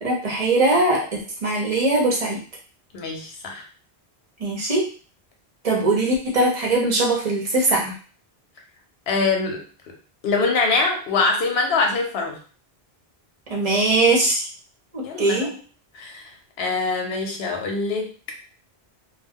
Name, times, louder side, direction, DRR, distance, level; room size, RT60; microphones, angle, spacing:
voice 1, 0.0-2.4 4.4-4.8 5.6-7.9 13.5-14.5 14.9-15.5, right 2 dB, 40° right, -2 dB, 0.8 m, -21 dB
voice 2, 2.9-3.6 9.1-9.6 10.2-12.4 15.0-15.6 15.9-16.3 16.6-18.1, left 3 dB, 80° left, 2 dB, 0.9 m, -23 dB
2.3 x 2.3 x 3.5 m, 0.39 s
omnidirectional pair, 1.0 m